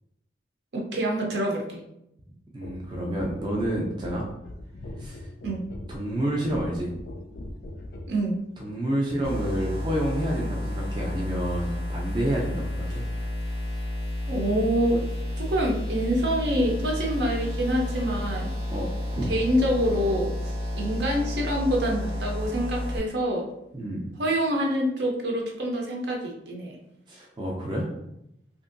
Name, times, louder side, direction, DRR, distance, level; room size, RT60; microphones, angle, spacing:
voice 1, 0.7-1.8 5.4-5.6 8.1-8.3 14.3-15.0 15.4-18.5 19.3-23.5 24.2-26.8, equal, 70° right, 0 dB, 0.6 m, -26 dB
voice 2, 2.5-4.3 5.0-5.3 5.9-6.9 8.6-13.0 18.7-19.3 23.7-24.1 27.1-27.9, right 1 dB, 25° right, -2 dB, 0.4 m, -29 dB
sound 1, 2.6-8.2 9.0-9.2, left 1 dB, 60° left, 0.3 m, -41 dB
sound 2, 9.2-23.0, left 1 dB, ahead, 0.7 m, -31 dB
2.9 x 2.5 x 2.5 m, 0.82 s
head